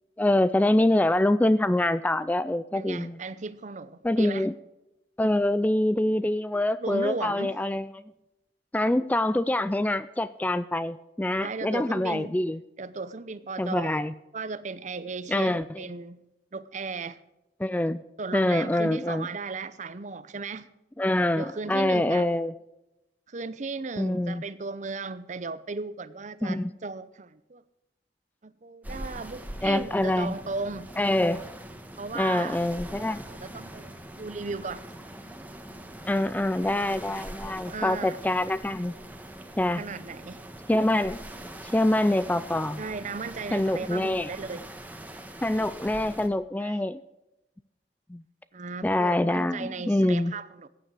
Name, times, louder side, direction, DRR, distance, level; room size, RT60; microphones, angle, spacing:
voice 1, 0.2-3.2 4.0-4.6 5.2-7.9 8.7-12.6 13.6-14.1 15.3-15.8 17.6-18.0 18.3-19.3 21.0-22.5 24.0-24.4 26.4-26.7 29.6-30.4 31.0-31.4 32.1-33.2 36.0-38.9 39.6-39.8 40.7-41.2 41.7-42.8 43.5-44.3 45.4-47.0 48.1-48.2 48.8-50.3, left 1 dB, 10° left, 0.3 m, -25 dB
voice 2, 2.7-4.5 6.8-7.5 11.4-12.4 12.8-14.0 14.3-16.2 16.5-17.2 18.2-20.7 21.4-22.3 23.3-27.6 28.4-30.9 32.0-32.6 33.3-34.8 37.7-38.2 39.8-40.5 42.8-44.7 46.6-46.8 48.5-50.7, right 4 dB, 45° right, 0.7 m, -36 dB
sound 1, 28.8-46.3, right 1 dB, 10° right, 1.3 m, -42 dB
15.0 x 9.8 x 4.8 m
head